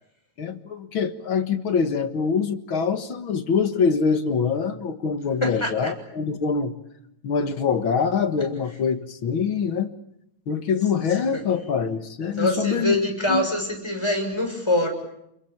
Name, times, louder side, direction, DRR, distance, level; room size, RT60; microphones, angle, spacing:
voice 1, 0.4-6.7 7.2-9.9 10.5-13.0 13.3-13.4, left 6 dB, 50° left, 9 dB, 2.1 m, -24 dB
voice 2, 5.4-5.9 11.3-11.4 12.4-14.9, left 1 dB, 10° left, 2 dB, 6.9 m, -24 dB
30.0 x 22.5 x 8.6 m, 0.80 s
omnidirectional pair, 3.3 m